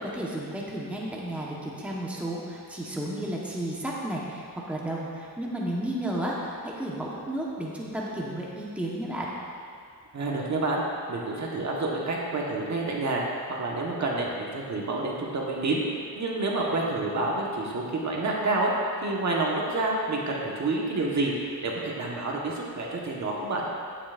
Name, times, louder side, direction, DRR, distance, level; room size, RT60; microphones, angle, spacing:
voice 1, 0.2-9.3, right 1 dB, 5° right, -4 dB, 1.2 m, -33 dB
voice 2, 10.1-10.8 11.1-13.2 13.5-15.8 16.1-18.7 19.0-21.3 21.6-23.7, right 2 dB, 45° right, -2 dB, 1.4 m, -28 dB
11.5 x 9.1 x 2.6 m, 2.3 s
cardioid pair, 110°, 39 cm